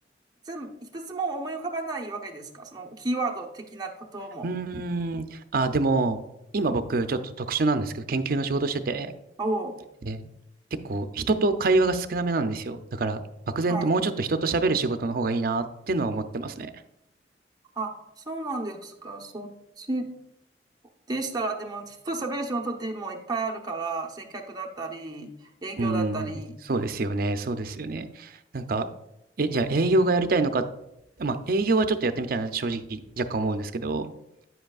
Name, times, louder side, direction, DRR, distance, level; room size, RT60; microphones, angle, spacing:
voice 1, 0.5-4.5 9.4-9.8 13.7-13.9 17.8-18.0 18.3-20.1 21.1-25.3 25.6-26.6, right 3 dB, 20° right, 0 dB, 0.8 m, -32 dB
voice 2, 4.4-6.2 6.5-9.1 10.0-10.3 10.8-13.2 13.5-16.7 25.8-26.3 26.7-28.9 29.4-30.6 31.2-34.1, right 3 dB, 55° right, 9 dB, 0.5 m, -26 dB
9.6 x 7.7 x 2.4 m, 0.85 s
head